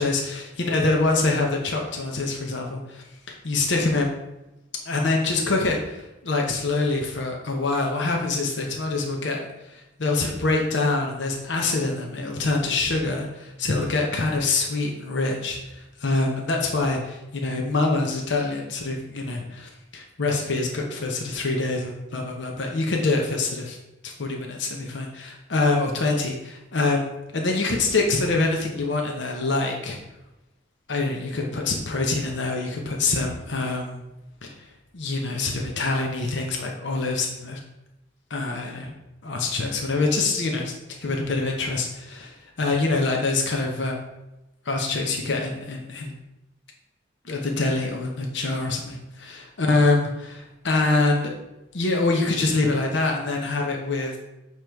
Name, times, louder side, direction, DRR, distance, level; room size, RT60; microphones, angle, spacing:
voice 1, 0.0-3.0 3.4-4.1 4.8-23.8 24.0-30.0 30.9-34.0 34.4-34.7 34.9-37.6 38.3-38.9 39.2-44.1 44.6-46.2 47.2-51.3 51.7-54.2, left 3 dB, 60° left, 1 dB, 0.8 m, -25 dB
7.2 x 3.1 x 4.5 m, 0.97 s
head